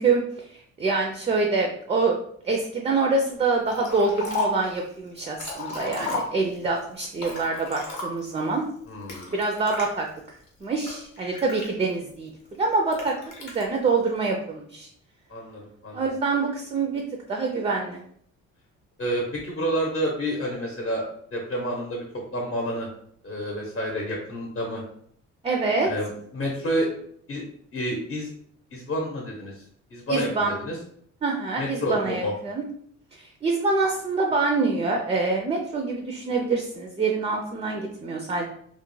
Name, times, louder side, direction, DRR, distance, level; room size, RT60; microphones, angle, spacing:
voice 1, 0.0-2.2 2.4-8.6 9.3-10.1 10.6-14.9 15.9-17.0 17.3-18.0 25.4-25.9 30.1-30.5 31.2-32.6 33.1-38.4, right 3 dB, 20° right, 2 dB, 0.3 m, -25 dB
Liquid, 3.7-4.7 5.2-6.7 7.2-8.4 9.1-9.9 10.5-12.1 12.9-13.6, left 3 dB, 85° left, 0.9 m, -33 dB
voice 2, 8.9-9.3 15.3-16.1 19.0-21.0 21.3-22.9 23.2-24.8 25.8-26.9 27.3-27.4 27.7-28.3 28.7-29.6 29.9-30.8 31.6-32.3, equal, 45° left, -2 dB, 0.8 m, -29 dB
2.3 x 2.1 x 3.0 m, 0.65 s
cardioid pair, 90°, 30 cm